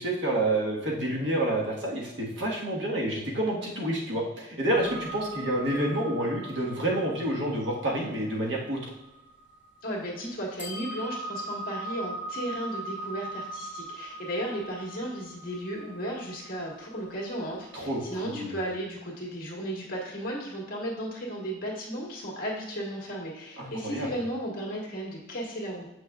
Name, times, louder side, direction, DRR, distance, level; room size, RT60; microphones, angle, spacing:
voice 1, 0.0-8.8 17.7-18.6 23.6-24.1, right 1 dB, 70° right, -2 dB, 1.5 m, -29 dB
sound 1, 4.7-9.9 10.6-18.1, right 2 dB, 10° right, 1.5 m, -41 dB
voice 2, 9.8-25.9, equal, 50° left, -3 dB, 1.7 m, -35 dB
7.2 x 6.2 x 2.4 m, 1.0 s
head